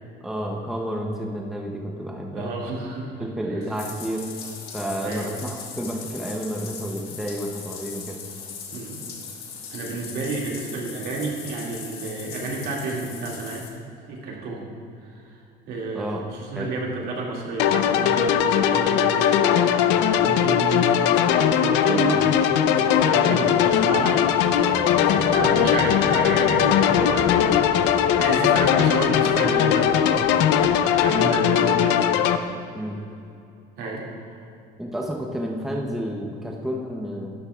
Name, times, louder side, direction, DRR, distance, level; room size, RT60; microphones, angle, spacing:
voice 1, 0.2-2.5 3.2-4.3 4.7-8.2 15.9-16.2 16.5-16.7 21.9-22.2 23.3-23.4 32.7-33.0 34.8-37.3, equal, ahead, -1 dB, 0.6 m, -30 dB
voice 2, 2.3-3.3 5.0-5.3 8.7-9.0 9.7-14.7 15.0-15.4 15.7-30.5 30.8-32.0 32.5-32.6 33.8-34.4, right 3 dB, 65° right, -2 dB, 2.1 m, -30 dB
Bathtub (filling or washing), 3.6-13.7, left 6 dB, 65° left, 1.5 m, -39 dB
sound 1, 17.6-32.4, left 9 dB, 90° left, 0.5 m, -20 dB
sound 2, 22.4-31.2, left 6 dB, 40° left, 0.6 m, -32 dB
12.0 x 11.5 x 2.3 m, 2.7 s
cardioid pair, 170°, 18 cm